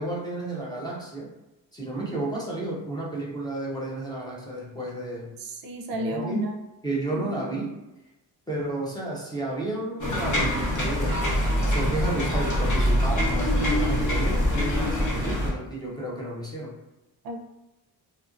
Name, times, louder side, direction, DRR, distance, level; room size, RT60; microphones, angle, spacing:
voice 1, 0.0-1.3 1.7-5.3 5.9-6.5 6.8-7.7 8.5-16.7, right 2 dB, 10° left, -5 dB, 0.4 m, -32 dB
voice 2, 5.4-6.6 7.1-7.4 17.2-17.4, equal, 55° right, 3 dB, 0.5 m, -32 dB
sound 1, 10.0-15.5, equal, 45° left, 0.8 m, -24 dB
2.8 x 2.4 x 2.4 m, 0.98 s
wide cardioid pair, 155°, 42 cm